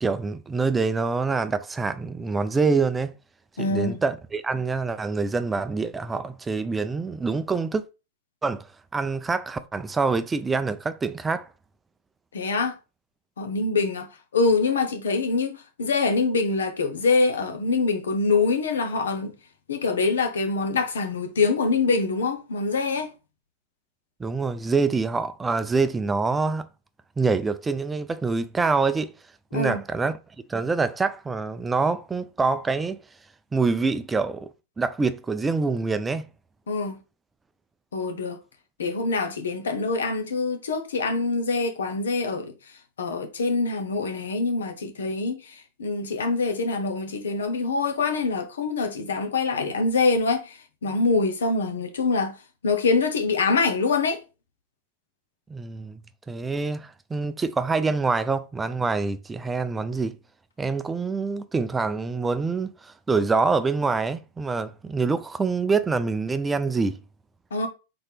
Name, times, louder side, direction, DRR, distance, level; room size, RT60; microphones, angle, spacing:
voice 1, 0.0-3.1 3.6-7.8 8.4-8.7 8.9-11.5 24.2-26.7 27.2-29.1 29.5-30.2 30.5-33.0 33.5-34.5 34.8-36.3 55.5-56.0 56.3-60.2 60.6-67.0, right 4 dB, 15° right, 0.4 m, -25 dB
voice 2, 3.6-4.0 12.3-12.7 13.4-14.1 14.3-19.3 19.7-23.1 29.5-29.8 36.7-37.0 37.9-38.4 38.8-42.5 43.0-52.4 52.6-54.2 67.5-67.7, left 4 dB, 80° left, 1.0 m, -24 dB
4.0 x 3.8 x 3.3 m
hypercardioid pair, 100°, 0 cm